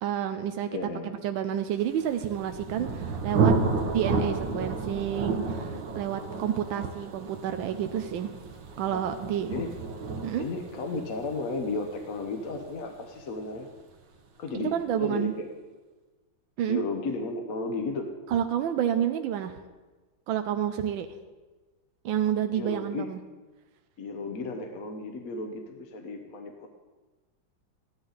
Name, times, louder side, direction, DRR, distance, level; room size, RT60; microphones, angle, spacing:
voice 1, 0.0-0.7 1.0-3.5 3.8-8.3 8.8-9.5 10.2-10.4 14.7-15.3 16.6-16.8 18.3-19.6 20.3-21.1 22.0-23.2, right 9 dB, 90° right, 7 dB, 1.4 m, -29 dB
voice 2, 0.7-1.1 2.8-2.9 8.9-9.0 9.5-9.7 10.4-13.7 14.4-14.7 15.0-15.5 16.6-18.1 22.5-23.1 24.0-26.7, left 3 dB, 50° left, 4 dB, 1.3 m, -34 dB
Thunder, 2.0-13.6, right 4 dB, 70° right, 1.7 m, -31 dB
14.0 x 11.5 x 4.0 m, 1.2 s
omnidirectional pair, 2.1 m